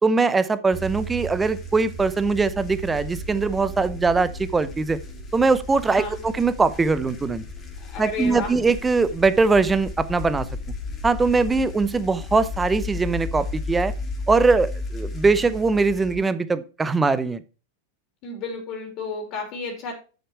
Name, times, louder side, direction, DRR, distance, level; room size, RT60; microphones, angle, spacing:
voice 1, 0.0-5.0 5.3-7.4 8.0-10.5 11.0-13.9 14.3-17.4, right 4 dB, 15° right, 14 dB, 0.7 m, -21 dB
sound 1, 0.7-16.2, left 2 dB, 25° left, 2.5 m, -34 dB
voice 2, 7.8-8.5 18.2-19.9, left 4 dB, 50° left, 2 dB, 3.3 m, -32 dB
7.9 x 6.6 x 4.6 m, 0.34 s
hypercardioid pair, 110°, 0 cm